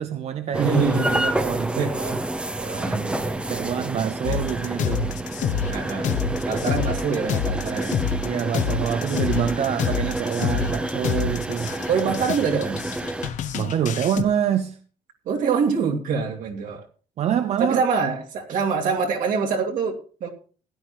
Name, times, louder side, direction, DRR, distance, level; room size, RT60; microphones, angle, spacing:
voice 1, 0.0-0.8 1.1-1.9 3.5-5.1 8.2-11.8 13.5-14.8 17.2-17.8, right 9 dB, 45° right, 0.6 m, -26 dB
sound 1, 0.5-13.3, right 1 dB, 5° right, 0.6 m, -29 dB
voice 2, 0.5-1.2 1.7-2.2 2.6-3.4 4.0-4.4 5.7-8.0 11.9-12.8 15.3-16.9 17.6-20.3, right 5 dB, 65° right, 2.5 m, -25 dB
sound 2, 4.2-14.2, left 7 dB, 60° left, 1.0 m, -28 dB
16.0 x 11.0 x 3.0 m
cardioid pair, 175°, 15 cm